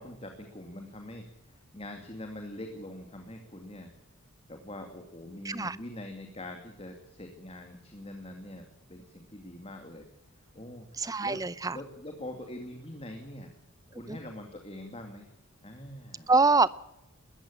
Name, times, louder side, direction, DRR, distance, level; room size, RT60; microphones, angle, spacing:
voice 1, 0.0-3.9 4.5-10.1 10.3-11.4 11.7-13.5 13.9-15.3 15.6-16.3, left 1 dB, 25° left, 4 dB, 2.4 m, -44 dB
voice 2, 5.4-5.8 11.0-11.8 14.1-14.2 16.3-16.7, right 3 dB, 15° right, 18 dB, 0.6 m, -24 dB
21.5 x 14.5 x 8.7 m, 0.91 s
head